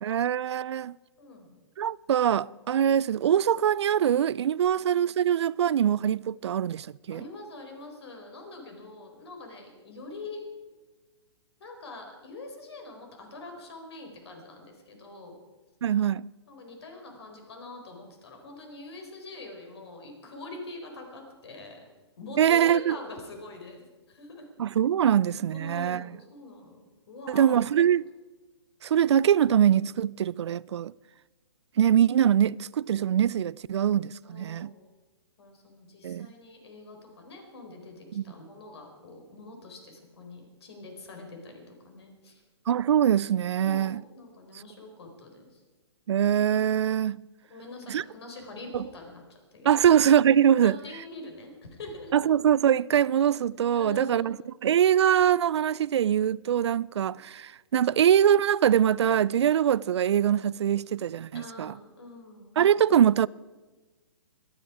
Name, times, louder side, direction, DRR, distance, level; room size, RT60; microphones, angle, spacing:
voice 1, 0.0-1.0 1.8-7.2 15.8-16.3 22.4-23.0 24.6-26.1 27.3-28.1 28.8-30.9 31.8-34.7 36.0-36.3 38.1-38.2 42.7-44.0 46.1-47.2 47.9-48.0 48.7-48.9 49.6-50.8 52.1-54.4 54.6-61.7 62.6-63.3, right 9 dB, 75° right, 0.4 m, -23 dB
voice 2, 1.2-1.6 4.6-5.3 7.1-10.4 11.6-15.4 16.5-21.8 22.2-24.5 25.5-27.6 34.2-34.9 35.4-42.4 43.6-45.6 47.5-49.2 49.5-49.9 50.6-52.2 53.7-54.3 61.3-62.6, left 2 dB, 65° left, 4.6 m, -44 dB
25.0 x 10.0 x 4.9 m
hypercardioid pair, 140°, 14 cm